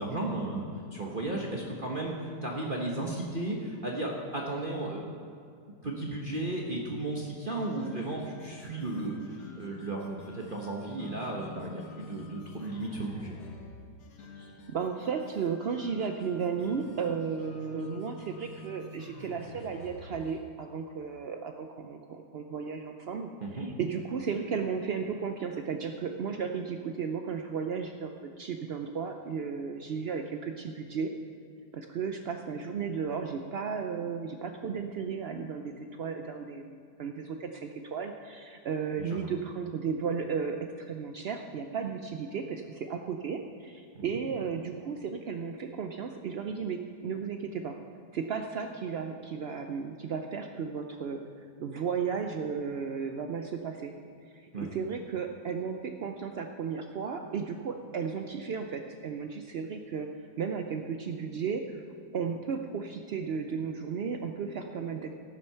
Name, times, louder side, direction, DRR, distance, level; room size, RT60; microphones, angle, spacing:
voice 1, 0.0-5.1 5.8-13.4 23.4-23.7 39.0-39.2 43.9-44.2 54.5-54.7, right 2 dB, 35° right, -1 dB, 1.1 m, -34 dB
sound 1, 7.6-20.4, left 2 dB, 85° left, 1.8 m, -48 dB
voice 2, 14.4-28.1 28.4-31.1 31.7-47.8 48.1-51.2 51.6-53.9 54.3-60.1 60.4-61.8 62.1-65.2, right 6 dB, 80° right, 5 dB, 0.5 m, -34 dB
13.5 x 7.6 x 5.7 m, 2.4 s
omnidirectional pair, 1.8 m